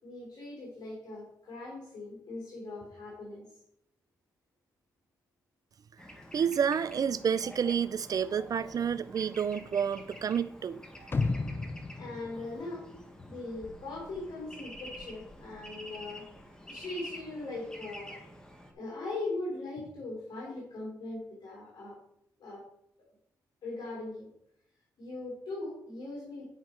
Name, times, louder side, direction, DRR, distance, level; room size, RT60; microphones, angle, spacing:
voice 1, 0.0-3.5 6.3-6.4 12.0-12.9 13.2-16.3 16.7-18.2 18.7-22.0 22.4-22.7 23.6-24.3 25.0-26.4, left 2 dB, 70° left, 3.9 m, -40 dB
Bird / Traffic noise roadway noise, 6.0-18.7, equal, 10° left, 1.4 m, -48 dB
voice 2, 6.3-10.8, right 7 dB, 55° right, 0.4 m, -29 dB
sound 1, 11.1-13.3 13.6-13.7, left 3 dB, 30° left, 0.7 m, -33 dB
9.7 x 5.6 x 4.6 m
cardioid pair, 80°, 7 cm